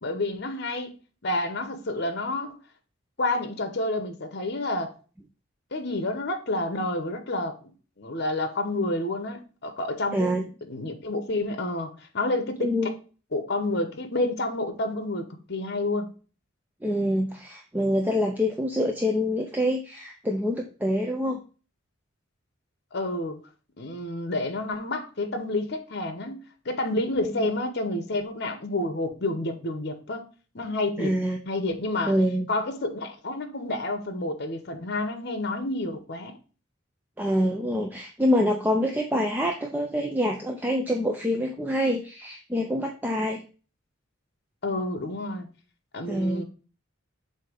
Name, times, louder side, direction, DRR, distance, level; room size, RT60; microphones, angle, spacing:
voice 1, 0.0-0.9 1.2-2.5 3.2-4.9 5.7-7.7 8.0-10.3 10.7-12.9 13.3-16.1 22.9-23.4 23.8-30.2 30.5-31.1 31.5-32.2 32.5-36.4 44.6-45.5 45.9-46.4, left 2 dB, 55° left, 1.0 m, -29 dB
voice 2, 10.1-10.4 12.6-12.9 16.8-21.4 27.2-27.5 31.0-31.4 32.1-32.5 37.2-43.4 46.1-46.4, equal, 10° right, 0.5 m, -26 dB
7.5 x 2.8 x 5.0 m
head